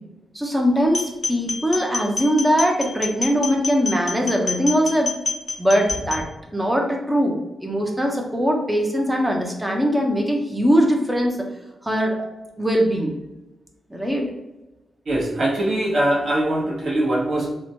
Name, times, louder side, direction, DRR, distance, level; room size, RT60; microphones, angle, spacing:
voice 1, 0.3-5.1 5.6-6.3 6.5-11.4 11.8-12.2 12.6-13.1 13.9-14.3, equal, 10° right, 1 dB, 0.5 m, -21 dB
sound 1, 0.9-6.2, left 3 dB, 40° left, 0.5 m, -28 dB
voice 2, 15.1-17.5, right 1 dB, 55° right, -3 dB, 0.9 m, -22 dB
2.9 x 2.1 x 2.6 m, 1.0 s
wide cardioid pair, 110°, 0 cm